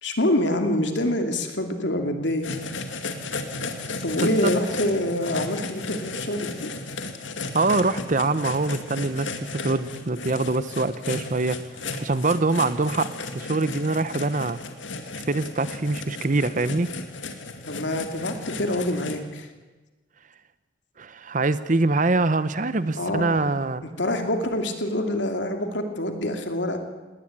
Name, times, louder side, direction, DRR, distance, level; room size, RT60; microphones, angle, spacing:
voice 1, 0.0-2.5 4.0-6.7 17.7-19.5 23.0-23.5 24.0-26.8, left 1 dB, 70° left, 5 dB, 2.7 m, -26 dB
sound 1, 2.4-19.1, left 3 dB, 85° left, 2.1 m, -34 dB
voice 2, 7.5-11.6 12.0-14.6 15.3-16.9 21.0-23.8, right 3 dB, 40° right, 15 dB, 0.8 m, -24 dB
19.5 x 18.5 x 8.8 m, 1.2 s
head